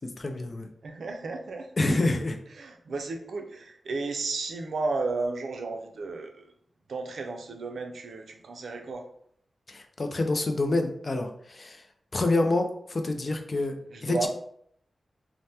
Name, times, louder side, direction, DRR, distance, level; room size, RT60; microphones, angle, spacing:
voice 1, 0.0-0.7 1.8-2.4 9.7-11.8 12.1-13.8 14.0-14.3, left 2 dB, 35° left, 5 dB, 0.3 m, -27 dB
voice 2, 0.8-1.7 2.5-6.5 6.9-9.1 13.9-14.3, right 3 dB, 85° right, 4 dB, 0.4 m, -33 dB
2.8 x 2.1 x 3.3 m, 0.67 s
wide cardioid pair, 155°, 0 cm